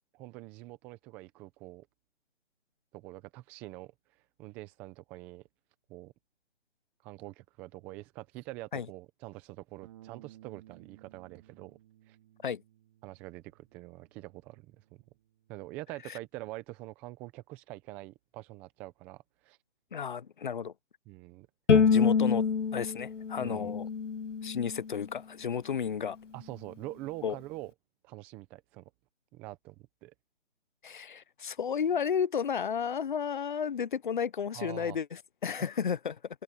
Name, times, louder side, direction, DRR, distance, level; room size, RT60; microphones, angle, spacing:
voice 1, 0.2-1.9 2.9-3.9 4.4-5.4 5.9-6.1 7.0-11.8 12.1-12.2 13.0-15.0 15.5-19.6 21.1-21.5 23.4-23.7 26.3-27.7 28.0-28.9 29.3-30.1 34.5-35.0, right 18 dB, 5° right, 0.7 m, -45 dB
Bass guitar, 9.8-16.1, right 13 dB, 25° right, 2.5 m, -58 dB
voice 2, 19.9-20.7 21.7-22.5 22.7-23.9 24.4-26.2 27.2-27.3 30.8-36.2, left 7 dB, 40° left, 0.9 m, -32 dB
Bowed string instrument, 21.7-24.9, left 6 dB, 75° left, 1.1 m, -26 dB
open air
figure-of-eight pair, 155°, 37 cm